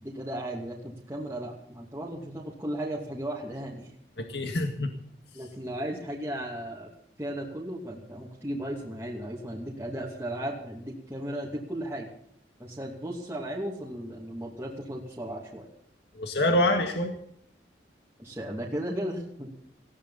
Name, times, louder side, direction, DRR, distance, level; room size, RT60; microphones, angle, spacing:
voice 1, 0.0-3.9 5.3-6.9 7.2-12.1 12.6-15.7 18.2-19.5, right 1 dB, 15° right, -4 dB, 2.6 m, -35 dB
voice 2, 4.2-4.9 16.2-17.2, left 1 dB, 70° left, 4 dB, 1.9 m, -26 dB
19.0 x 16.0 x 4.2 m, 0.70 s
head